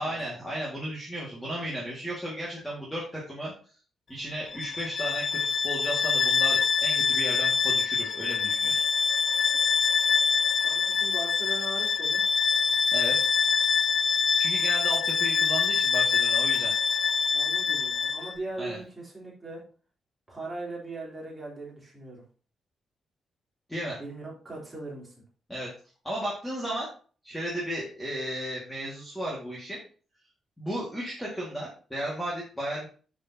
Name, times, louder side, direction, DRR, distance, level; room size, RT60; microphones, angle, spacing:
voice 1, 0.0-3.5 4.1-8.8 12.9-13.2 14.4-16.7 18.6-18.8 23.7-24.0 25.5-25.7 26.0-26.9 27.2-29.8 30.6-32.9, right 1 dB, 5° left, -5 dB, 2.0 m, -34 dB
Bowed string instrument, 4.5-18.4, left 5 dB, 35° left, 0.4 m, -25 dB
voice 2, 10.6-12.2 17.3-19.6 20.3-22.2 24.0-25.1, right 2 dB, 10° right, -5 dB, 3.4 m, -39 dB
10.0 x 6.6 x 2.9 m, 0.39 s
wide cardioid pair, 170°, 0 cm